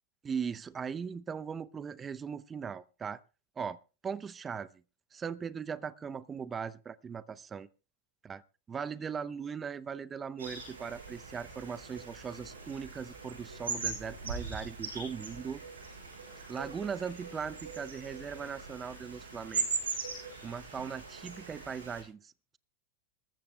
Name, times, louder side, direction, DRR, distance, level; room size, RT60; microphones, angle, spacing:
voice 1, 0.2-3.2 3.6-4.7 5.1-7.7 8.2-8.4 8.7-15.6 16.4-22.6, right 6 dB, 20° right, 0.7 m, -39 dB
sound 1, 10.4-22.0, right 4 dB, 85° right, 6.8 m, -40 dB
25.0 x 14.0 x 2.2 m
hypercardioid pair, 100°, 0 cm